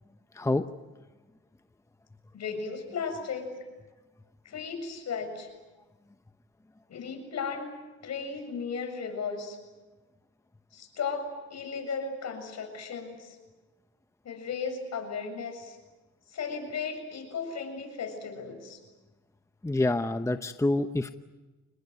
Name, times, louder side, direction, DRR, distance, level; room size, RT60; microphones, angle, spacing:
voice 1, 0.3-0.6 19.6-21.1, left 2 dB, 10° left, 9 dB, 0.9 m, -27 dB
voice 2, 2.3-3.5 4.5-5.5 6.9-7.7 8.0-9.6 10.7-13.4 14.2-15.8 16.3-18.8, left 5 dB, 60° left, 5 dB, 7.3 m, -35 dB
27.0 x 21.0 x 9.5 m, 1.2 s
cardioid pair, 90°, 30 cm